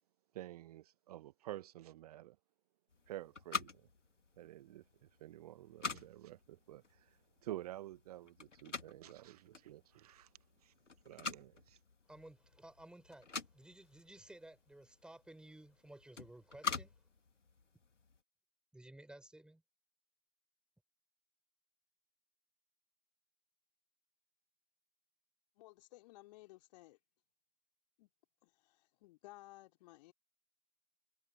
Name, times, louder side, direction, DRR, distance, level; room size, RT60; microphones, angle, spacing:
voice 1, 0.3-2.4 3.1-3.9 4.4-10.3 10.6-10.7 11.0-11.8, right 14 dB, 30° right, 0.9 m, -50 dB
sound 1, 2.9-18.2, left 5 dB, 75° left, 2.8 m, -47 dB
voice 2, 12.1-16.9 18.7-19.6, right 1 dB, ahead, 6.1 m, -56 dB
voice 3, 25.6-27.0 28.0-28.1 28.4-30.1, left 19 dB, 35° left, 3.4 m, -58 dB
figure-of-eight pair, 125°, 37 cm